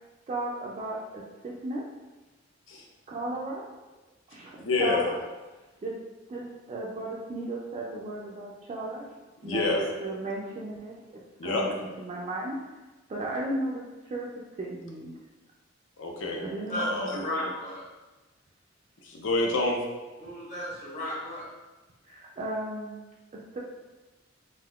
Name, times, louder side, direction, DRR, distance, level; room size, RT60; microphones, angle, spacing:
voice 1, 0.3-1.9 3.1-3.7 4.3-5.2 5.8-6.0 6.3-9.1 9.4-11.0 11.4-12.6 13.1-14.3 14.6-15.2 16.4-17.1 22.1-23.0 23.3-23.6, right 1 dB, 35° right, -4 dB, 0.3 m, -35 dB
voice 2, 4.6-5.0 9.4-9.9 11.4-11.6 16.0-16.4 16.7-17.2 19.0-19.8, left 2 dB, 70° left, 0 dB, 0.6 m, -27 dB
voice 3, 16.7-17.8 20.2-21.4, equal, 40° left, -8 dB, 1.1 m, -34 dB
3.4 x 2.6 x 2.3 m, 1.2 s
head